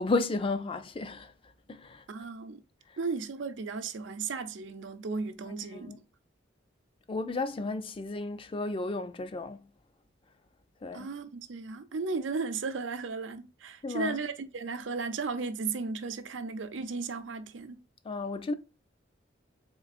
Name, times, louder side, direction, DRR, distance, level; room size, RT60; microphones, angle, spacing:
voice 1, 0.0-1.3 1.7-2.0 5.7-6.0 7.1-9.7 10.8-11.1 13.8-14.2 18.1-18.5, left 3 dB, 30° left, 0.4 m, -33 dB
voice 2, 2.1-2.6 3.0-6.0 10.9-17.8, right 4 dB, 85° right, 0.6 m, -35 dB
3.8 x 3.3 x 2.4 m
head